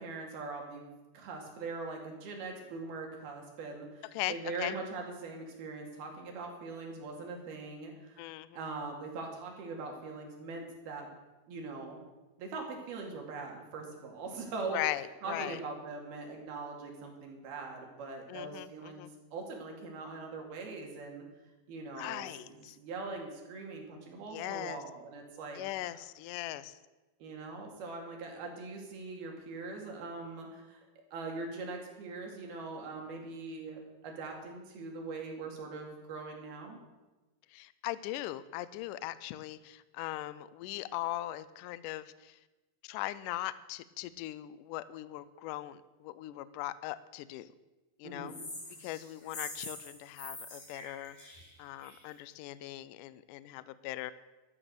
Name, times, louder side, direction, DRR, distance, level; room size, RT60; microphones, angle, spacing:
voice 1, 0.0-8.2 8.5-11.1 11.5-12.0 12.4-14.8 15.2-21.2 21.7-25.6 27.2-30.9 31.1-36.8 48.0-48.4, right 3 dB, 80° right, 1 dB, 4.4 m, -42 dB
voice 2, 4.1-4.7 8.2-8.6 14.7-15.6 18.3-19.1 22.0-22.8 24.3-24.8 25.6-26.8 37.5-42.4 42.8-47.5 48.0-48.3 48.8-51.3 51.6-54.1, left 15 dB, 85° left, 16 dB, 1.8 m, -39 dB
sound 1, 48.3-52.1, left 2 dB, 60° left, 6.2 m, -45 dB
12.5 x 12.5 x 6.7 m, 1.1 s
omnidirectional pair, 4.3 m